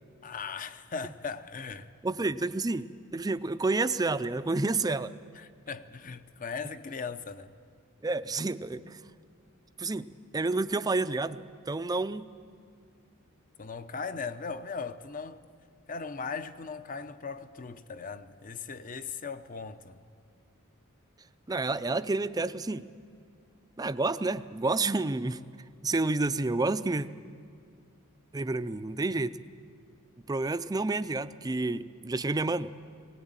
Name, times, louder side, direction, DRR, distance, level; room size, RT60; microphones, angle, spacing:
voice 1, 0.2-1.9 5.3-7.5 13.6-15.4 15.9-20.0, left 5 dB, 40° left, 0.7 m, -38 dB
voice 2, 2.0-5.1 8.0-9.0 9.8-11.4 11.7-12.3 21.5-22.9 23.8-25.4 25.8-27.1 28.3-29.4 30.3-32.9, right 3 dB, 15° right, 0.5 m, -29 dB
19.5 x 18.5 x 8.9 m
head